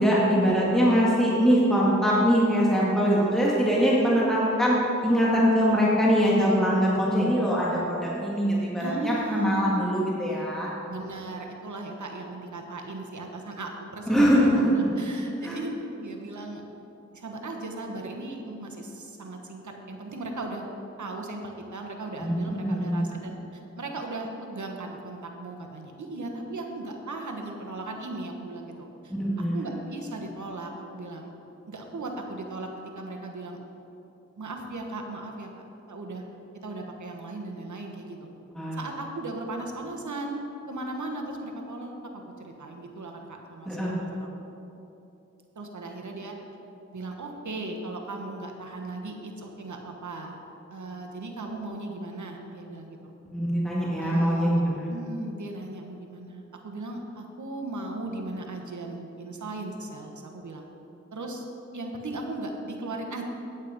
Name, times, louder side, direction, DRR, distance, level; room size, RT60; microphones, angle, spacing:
voice 1, 0.0-4.8 5.0-10.7 14.1-15.0 15.4-15.6 22.2-23.1 29.1-29.7 38.6-38.8 43.7-43.9 53.3-54.9, equal, ahead, -6 dB, 2.0 m, -23 dB
voice 2, 8.8-9.8 10.9-16.6 17.1-20.6 21.0-29.1 29.5-31.3 31.7-32.7 32.9-33.6 34.4-35.5 35.9-36.2 36.6-38.3 38.7-44.3 45.5-46.3 46.9-50.4 50.7-53.0 54.0-54.6 54.9-60.6 61.1-61.4 61.7-63.2, right 2 dB, 80° right, 2 dB, 1.2 m, -37 dB
8.8 x 8.3 x 5.2 m, 2.9 s
cardioid pair, 45°, 29 cm